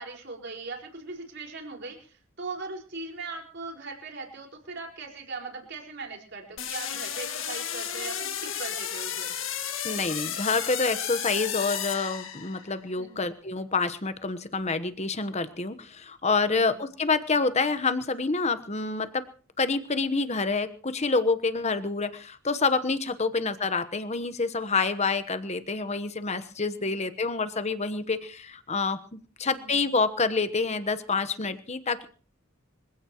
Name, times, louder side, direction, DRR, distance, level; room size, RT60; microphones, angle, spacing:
voice 1, 0.0-9.3 12.9-13.3 16.5-16.8 23.2-23.4 26.8-27.1 29.4-29.8, right 3 dB, 55° right, 2 dB, 4.9 m, -40 dB
sound 1, 6.6-12.8, left 9 dB, 60° left, 1.8 m, -33 dB
voice 2, 9.8-19.2 19.6-32.1, left 4 dB, 30° left, 11 dB, 1.1 m, -27 dB
25.5 x 16.5 x 3.0 m, 0.40 s
head